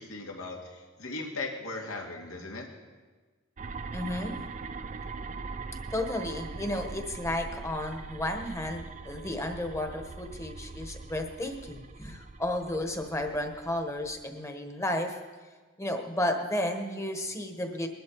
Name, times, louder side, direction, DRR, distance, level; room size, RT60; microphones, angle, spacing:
voice 1, 0.0-2.7, left 3 dB, 80° left, 0 dB, 2.4 m, -38 dB
sound 1, 3.6-14.3, right 4 dB, 35° right, 0.5 m, -41 dB
voice 2, 3.9-4.4 5.9-15.2 15.8-17.9, left 1 dB, 15° left, 5 dB, 1.2 m, -33 dB
21.0 x 11.5 x 4.7 m, 1.4 s
head